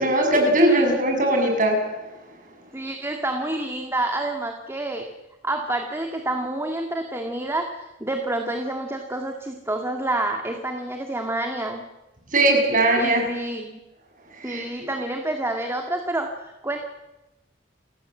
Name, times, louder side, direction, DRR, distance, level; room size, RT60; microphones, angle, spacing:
voice 1, 0.0-1.8 12.3-13.2 14.4-14.6, right 1 dB, 45° right, 3 dB, 7.4 m, -19 dB
voice 2, 2.7-5.1 5.4-11.8 13.0-13.8 14.4-16.8, right 2 dB, 15° right, 3 dB, 2.1 m, -28 dB
30.0 x 17.5 x 7.8 m, 1.0 s
head